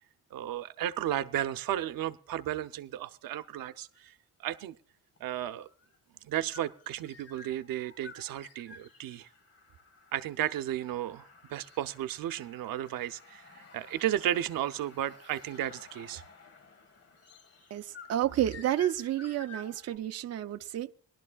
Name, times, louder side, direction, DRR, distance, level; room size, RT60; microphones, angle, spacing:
voice 1, 0.3-4.1 4.4-4.8 5.2-5.7 6.2-9.3 10.1-16.2, right 12 dB, 85° right, 0.7 m, -34 dB
sound 1, 3.7-4.1 5.2-20.0, left 4 dB, 45° left, 1.7 m, -53 dB
voice 2, 17.7-20.9, right 12 dB, 50° right, 0.5 m, -30 dB
21.0 x 12.0 x 2.3 m
cardioid pair, 160°, 33 cm